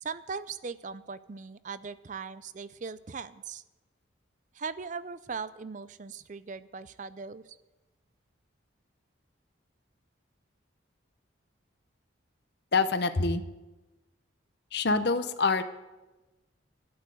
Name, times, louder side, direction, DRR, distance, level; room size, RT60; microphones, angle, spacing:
voice 1, 0.0-3.6 4.5-7.6, right 5 dB, 40° right, 16 dB, 0.4 m, -39 dB
voice 2, 12.7-13.4 14.7-15.6, left 4 dB, 55° left, 10 dB, 0.8 m, -25 dB
12.0 x 9.0 x 7.8 m, 1.1 s
head